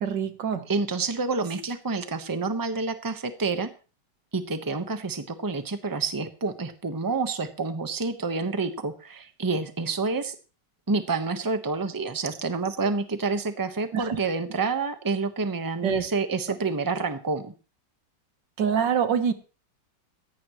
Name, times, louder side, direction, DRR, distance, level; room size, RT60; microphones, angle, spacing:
voice 1, 0.0-0.6 13.9-14.2 15.8-16.0 18.6-19.3, right 7 dB, 85° right, 10 dB, 1.9 m, -25 dB
voice 2, 0.7-3.7 4.3-10.3 10.9-17.5, right 4 dB, 15° right, 8 dB, 1.0 m, -28 dB
17.0 x 15.0 x 3.1 m, 0.35 s
omnidirectional pair, 1.9 m